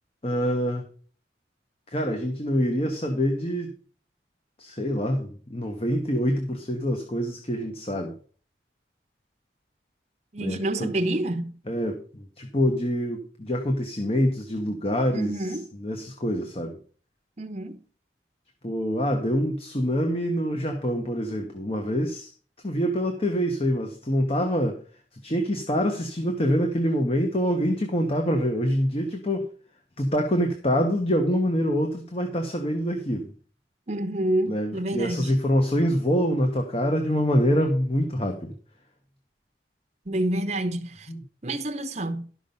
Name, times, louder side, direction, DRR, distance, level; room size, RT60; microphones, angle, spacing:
voice 1, 0.2-0.8 1.9-3.8 4.6-8.1 10.4-10.9 11.7-16.8 18.6-22.3 22.6-24.8 25.2-29.5 30.0-33.3 34.5-38.5, equal, 35° left, 1.2 m, -25 dB
voice 2, 10.3-11.5 15.1-15.7 17.4-17.8 33.9-35.3 40.1-41.1 41.4-42.3, right 1 dB, 40° right, 0.8 m, -28 dB
12.0 x 6.2 x 5.5 m
head